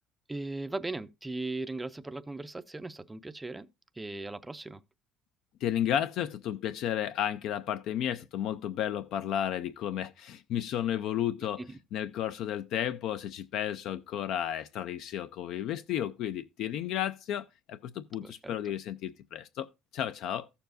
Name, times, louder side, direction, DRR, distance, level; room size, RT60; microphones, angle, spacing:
voice 1, 0.3-3.7 3.9-4.8 11.6-11.8 18.2-18.7, right 2 dB, 10° right, 0.4 m, -38 dB
voice 2, 5.6-11.6 11.9-19.7 19.9-20.5, left 10 dB, 60° left, 0.4 m, -33 dB
14.5 x 6.9 x 2.5 m
cardioid pair, 155°, 0 cm